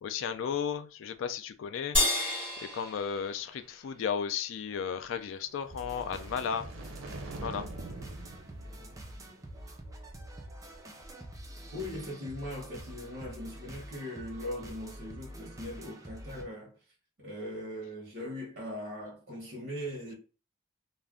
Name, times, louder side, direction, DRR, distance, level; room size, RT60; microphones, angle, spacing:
voice 1, 0.0-2.3 2.7-6.7 7.4-7.6, left 7 dB, 75° left, 0.3 m, -34 dB
sound 1, 1.9-4.5, left 2 dB, 10° left, 1.5 m, -32 dB
sound 2, 5.4-9.7, right 2 dB, 80° right, 0.5 m, -45 dB
sound 3, 5.7-16.4, right 1 dB, 15° right, 0.4 m, -46 dB
voice 2, 11.7-16.7 17.2-20.1, left 1 dB, 50° right, 0.9 m, -40 dB
2.4 x 2.1 x 3.5 m
head